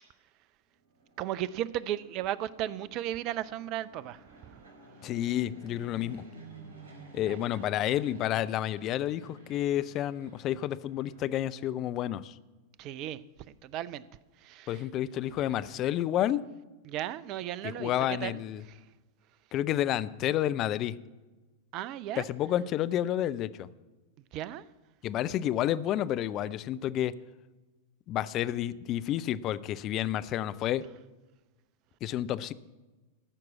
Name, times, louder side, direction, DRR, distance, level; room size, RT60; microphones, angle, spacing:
Fixed-wing aircraft airplane, 0.8-11.9, right 2 dB, 60° right, 4.1 m, -53 dB
voice 1, 1.2-4.2 7.3-7.4 12.8-13.2 13.6-14.0 14.5-14.7 16.9-17.9 18.2-18.4 21.7-22.2 24.3-24.6, right 12 dB, 40° right, 0.5 m, -35 dB
voice 2, 5.0-6.2 7.1-12.3 14.7-16.4 17.6-18.6 19.5-20.9 22.2-23.7 25.0-27.1 28.1-30.8 32.0-32.5, left 12 dB, 35° left, 0.5 m, -30 dB
14.5 x 6.0 x 8.3 m
figure-of-eight pair, 90°, 0 cm